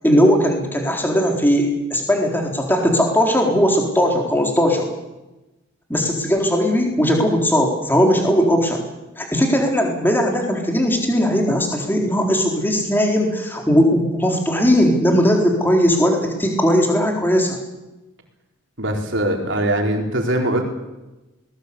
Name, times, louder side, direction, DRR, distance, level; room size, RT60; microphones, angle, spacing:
voice 1, 0.0-4.9 5.9-8.9 9.2-17.6, equal, 10° left, 1 dB, 4.0 m, -18 dB
voice 2, 18.8-20.6, right 1 dB, 60° right, 2 dB, 4.4 m, -21 dB
21.0 x 20.0 x 8.4 m, 1.0 s
head